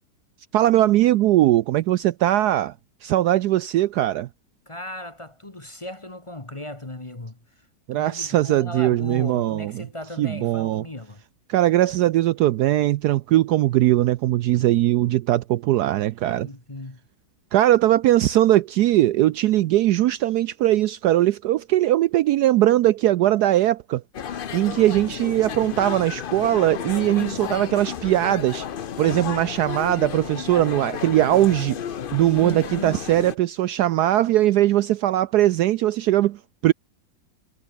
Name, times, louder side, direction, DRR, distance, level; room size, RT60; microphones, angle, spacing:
voice 1, 0.5-2.7 3.0-4.3 7.9-9.8 10.2-10.8 11.5-16.5 17.5-24.0 24.5-28.7 29.0-31.8 32.1-36.7, right 14 dB, 75° right, 1.0 m, -20 dB
voice 2, 4.7-7.4 7.9-11.2 16.3-17.0 27.1-27.7 29.0-29.5 32.3-33.1, left 1 dB, 20° left, 1.4 m, -36 dB
sound 1, 24.1-33.4, left 8 dB, 85° left, 0.4 m, -33 dB
omnidirectional pair, 2.0 m